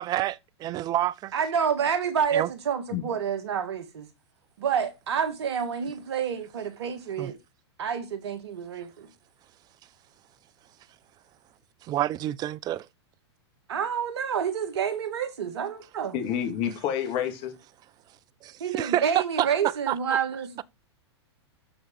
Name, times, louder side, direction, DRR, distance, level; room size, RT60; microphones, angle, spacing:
voice 1, 0.0-1.3 2.3-2.5 7.2-7.3 11.8-12.9 18.4-20.2, right 14 dB, 25° right, 0.5 m, -28 dB
voice 2, 1.3-4.1 4.6-7.4 7.8-9.1 13.7-16.2 18.6-20.6, right 7 dB, 70° right, 1.9 m, -28 dB
voice 3, 16.1-17.5, left 9 dB, 40° left, 2.7 m, -28 dB
12.5 x 4.9 x 4.7 m
hypercardioid pair, 110°, 15 cm